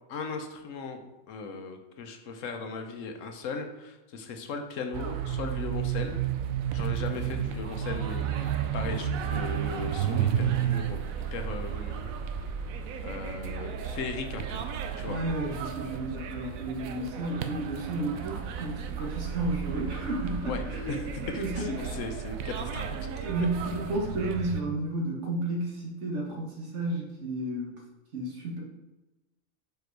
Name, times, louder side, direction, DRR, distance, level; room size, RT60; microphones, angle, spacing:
voice 1, 0.1-1.0 1.3-6.2 6.7-11.0 11.3-12.1 13.0-14.6 15.0-15.2 20.5-20.6 20.9-23.7, left 4 dB, 70° left, 5 dB, 1.1 m, -37 dB
sound 1, 4.9-24.6, right 9 dB, 85° right, 1.0 m, -33 dB
voice 2, 15.0-21.9 22.9-27.8 28.1-28.6, right 2 dB, 60° right, -1 dB, 1.7 m, -32 dB
5.3 x 4.9 x 4.6 m, 1.0 s
omnidirectional pair, 1.4 m